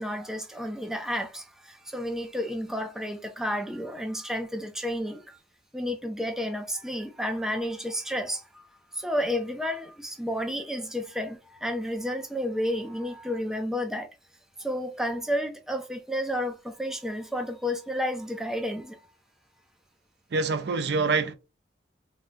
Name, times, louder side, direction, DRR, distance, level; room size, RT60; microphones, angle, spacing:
voice 1, 0.0-5.4 5.7-14.1 14.6-19.0, equal, 5° right, 0.3 m, -31 dB
voice 2, 20.3-21.3, right 4 dB, 65° right, 0.5 m, -25 dB
3.6 x 2.2 x 2.5 m
head